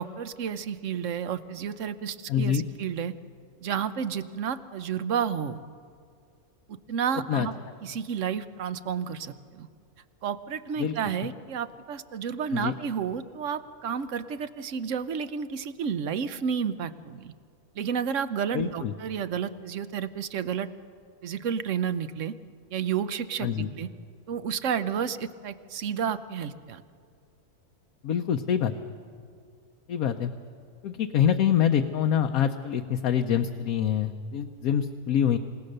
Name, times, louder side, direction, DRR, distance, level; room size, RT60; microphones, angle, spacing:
voice 1, 0.0-3.1 3.6-5.6 6.7-7.5 7.8-9.7 10.2-17.3 17.8-20.7 21.2-22.4 22.7-23.9 24.3-26.8, right 7 dB, 60° right, 13 dB, 1.1 m, -31 dB
voice 2, 2.3-2.6 7.3-7.5 10.8-10.9 12.5-12.7 18.5-18.9 23.4-23.7 28.0-28.7 29.9-30.3 30.8-35.4, left 9 dB, 75° left, 5 dB, 1.2 m, -25 dB
27.5 x 17.5 x 6.6 m, 2.3 s
omnidirectional pair, 1.5 m